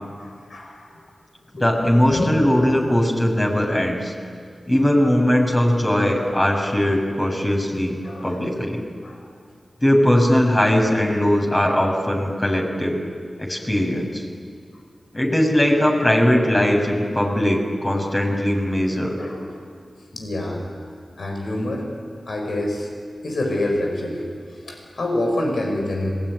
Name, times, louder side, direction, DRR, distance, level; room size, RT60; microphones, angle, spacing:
voice 1, 0.2-1.0 1.6-2.3 8.0-8.4 9.0-9.2 11.6-11.7 19.2-19.6 20.1-20.6 21.2-21.9 22.3-22.9 23.2-26.1, left 1 dB, 80° left, 1 dB, 5.2 m, -27 dB
voice 2, 1.6-4.1 4.7-8.8 9.8-13.0 13.4-14.2 15.1-19.2, left 1 dB, 30° left, 1 dB, 6.5 m, -20 dB
25.5 x 20.0 x 9.7 m, 2.1 s
cardioid pair, 45°, 0 cm